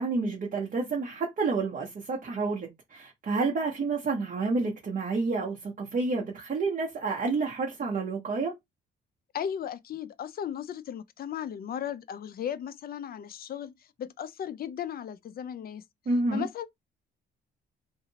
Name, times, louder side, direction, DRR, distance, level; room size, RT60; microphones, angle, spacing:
voice 1, 0.0-8.5 16.1-16.5, right 3 dB, 45° right, 1.0 m, -29 dB
voice 2, 9.3-15.8 16.3-16.7, left 9 dB, 50° left, 0.4 m, -36 dB
2.7 x 2.5 x 2.8 m
cardioid pair, 90°, 20 cm